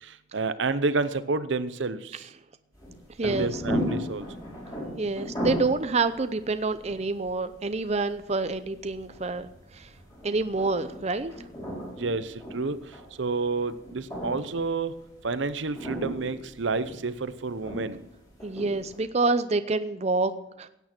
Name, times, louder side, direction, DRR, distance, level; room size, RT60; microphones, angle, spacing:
voice 1, 0.0-2.3 3.2-4.3 12.0-12.8 13.2-14.9 15.2-18.0, right 3 dB, 75° right, 13 dB, 0.8 m, -29 dB
sound 1, 2.7-19.0, equal, 20° left, 5.9 m, -37 dB
voice 2, 3.2-3.5 5.0-9.5 9.7-9.9 10.2-11.3 18.4-20.3 20.6-20.7, right 3 dB, 35° right, 10 dB, 0.6 m, -27 dB
16.5 x 9.1 x 6.0 m, 0.86 s
head